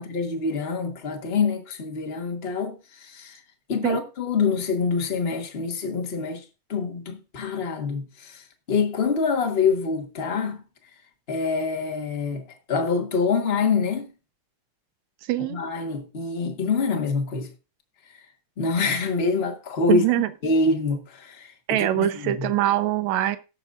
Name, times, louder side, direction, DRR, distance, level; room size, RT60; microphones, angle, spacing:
voice 1, 0.0-3.4 3.7-6.4 6.7-10.6 11.3-14.1 15.5-17.5 18.6-20.0 20.4-22.5, left 4 dB, 45° left, 0.7 m, -26 dB
voice 2, 15.3-15.6 19.9-20.3 21.7-23.4, right 13 dB, 75° right, 2.1 m, -23 dB
18.5 x 6.8 x 2.4 m
omnidirectional pair, 3.4 m